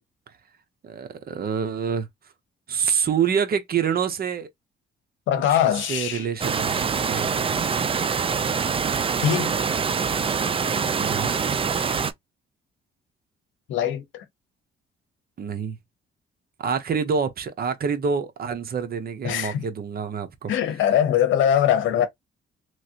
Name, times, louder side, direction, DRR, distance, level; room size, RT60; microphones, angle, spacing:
voice 1, 0.8-2.1 2.7-4.5 5.9-7.5 11.0-11.3 15.4-15.8 16.6-20.5, right 6 dB, 50° right, 0.8 m, -26 dB
voice 2, 5.3-6.3 9.2-9.6 13.7-14.2 19.2-19.6 20.5-22.1, left 10 dB, 80° left, 0.9 m, -22 dB
sound 1, 6.4-12.1, right 6 dB, 30° right, 0.4 m, -24 dB
3.1 x 2.4 x 2.8 m
cardioid pair, 90°, 20 cm